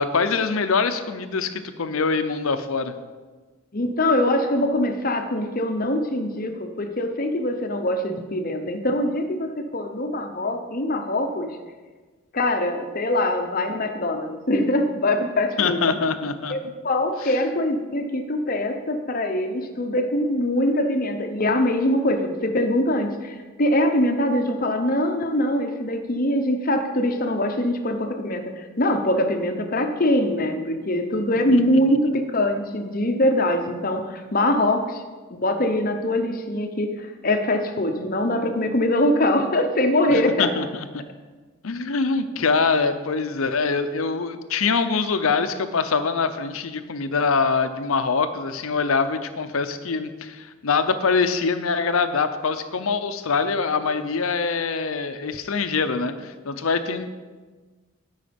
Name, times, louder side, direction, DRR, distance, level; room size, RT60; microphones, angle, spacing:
voice 1, 0.0-2.9 15.6-16.5 31.5-31.6 31.9-32.0 40.1-41.0 41.6-57.1, left 4 dB, 70° left, 10 dB, 0.7 m, -24 dB
voice 2, 3.7-11.6 12.3-15.8 16.5-16.6 16.8-35.0 35.3-40.5, left 1 dB, 40° left, 6 dB, 0.8 m, -23 dB
12.5 x 5.6 x 5.2 m, 1.4 s
head